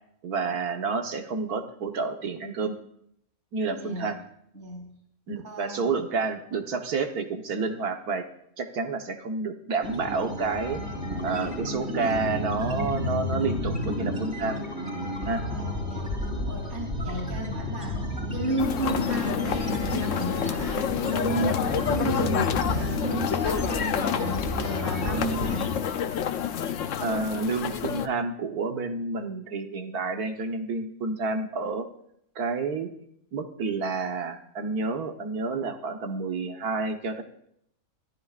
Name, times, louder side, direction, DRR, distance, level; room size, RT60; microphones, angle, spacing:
voice 1, 0.2-2.8 3.5-4.2 5.3-8.2 8.6-10.8 11.2-14.6 15.3-15.5 27.0-31.9 32.3-32.9 33.3-37.2, right 4 dB, 80° right, 5 dB, 1.8 m, -29 dB
voice 2, 3.7-4.1 4.5-4.9 5.4-6.0 15.5-16.1 16.5-18.0 18.3-25.7, right 2 dB, 50° right, -1 dB, 3.8 m, -33 dB
sound 1, 9.8-25.8, left 1 dB, 20° right, 3.6 m, -32 dB
sound 2, 18.6-28.1, left 8 dB, 60° left, 1.0 m, -28 dB
25.0 x 13.0 x 2.5 m, 0.71 s
omnidirectional pair, 1.6 m